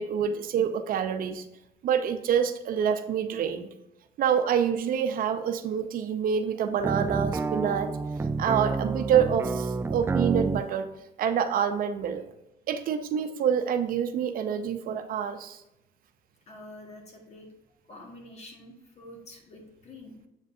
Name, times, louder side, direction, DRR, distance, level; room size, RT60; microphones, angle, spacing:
voice 1, 0.0-1.4 1.8-3.7 4.2-7.9 8.4-10.9 11.2-12.2 12.7-15.6, right 8 dB, 55° right, 8 dB, 0.7 m, -27 dB
sound 1, 6.8-10.6, right 4 dB, 15° right, 0.3 m, -29 dB
voice 2, 16.5-17.5 17.9-20.3, left 1 dB, 40° left, 1 dB, 1.8 m, -47 dB
7.6 x 5.1 x 2.7 m, 0.89 s
cardioid pair, 110°, 17 cm